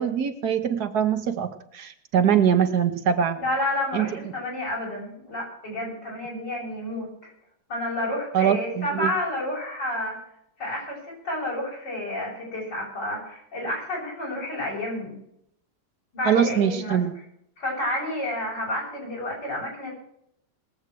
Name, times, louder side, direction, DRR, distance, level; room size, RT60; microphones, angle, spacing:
voice 1, 0.0-3.4 3.9-4.1 8.3-9.1 16.2-17.1, right 8 dB, 70° right, 9 dB, 1.6 m, -23 dB
voice 2, 3.4-7.1 7.7-10.2 10.6-15.1 16.1-17.0 17.6-19.9, left 1 dB, 85° left, -3 dB, 7.5 m, -30 dB
20.0 x 8.0 x 6.1 m, 0.74 s
omnidirectional pair, 1.8 m